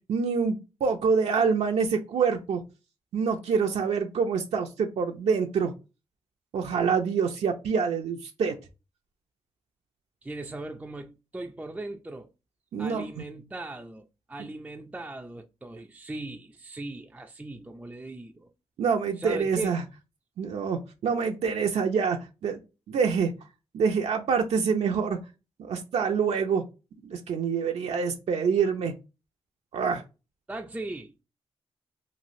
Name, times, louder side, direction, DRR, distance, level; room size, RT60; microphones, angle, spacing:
voice 1, 0.1-2.6 3.1-5.7 6.5-8.5 12.7-13.1 18.8-19.8 20.4-22.6 22.9-23.3 23.7-25.2 25.6-26.6 27.0-28.9 29.7-30.0, right 6 dB, 75° right, 0.4 m, -26 dB
voice 2, 10.2-12.3 12.8-18.5 19.2-19.7 30.5-31.1, right 2 dB, 10° right, 0.3 m, -38 dB
3.1 x 2.4 x 2.6 m
cardioid pair, 65°, 11 cm